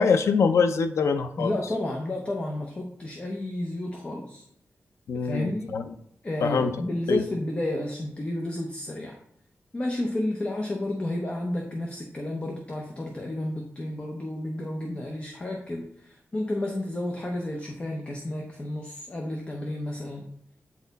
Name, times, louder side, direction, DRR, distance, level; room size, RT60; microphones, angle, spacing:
voice 1, 0.0-1.5 5.1-5.8 6.4-6.7 7.1-7.2, left 5 dB, 90° left, 9 dB, 0.5 m, -23 dB
voice 2, 1.4-4.5 5.2-5.7 6.2-9.2 9.7-20.3, left 1 dB, 25° left, 1 dB, 0.7 m, -31 dB
8.3 x 4.2 x 4.0 m, 0.70 s
wide cardioid pair, 170°, 5 cm